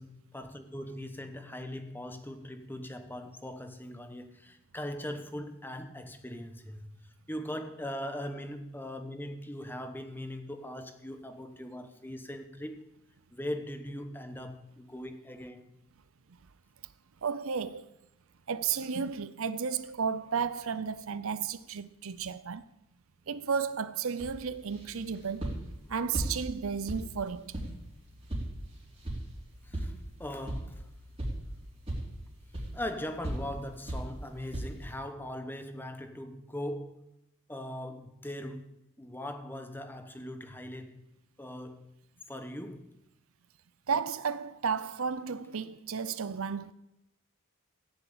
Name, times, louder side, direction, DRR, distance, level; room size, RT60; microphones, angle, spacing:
voice 1, 0.0-7.0 7.3-12.8 13.3-15.8 29.6-29.9 30.2-30.9 32.7-37.1 37.5-40.9 41.4-41.9 42.3-42.9 43.9-44.0, left 1 dB, 10° left, 0.9 m, -40 dB
voice 2, 17.2-17.8 18.5-22.6 23.3-25.5 25.9-27.5 43.9-46.7, right 6 dB, 65° right, 0.6 m, -33 dB
sound 1, 24.2-35.0, right 1 dB, 25° right, 3.7 m, -39 dB
16.0 x 7.0 x 8.7 m
head